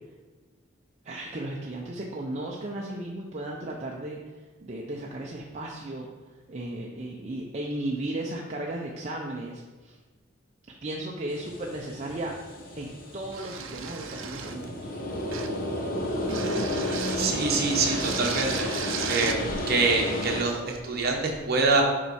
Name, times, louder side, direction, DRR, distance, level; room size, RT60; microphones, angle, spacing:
voice 1, 1.0-6.1 6.5-10.0 10.8-12.4 12.8-14.9, right 1 dB, 35° right, -2 dB, 0.6 m, -35 dB
sound 1, 11.3-20.4, left 1 dB, 45° left, 1.1 m, -32 dB
sound 2, 13.3-14.7 15.3-15.6 16.3-17.3 17.7-19.4, right 8 dB, 70° right, 0.6 m, -36 dB
voice 2, 17.1-18.7 19.0-21.8, right 3 dB, 50° right, 0 dB, 1.2 m, -25 dB
7.5 x 4.7 x 4.2 m, 1.3 s
head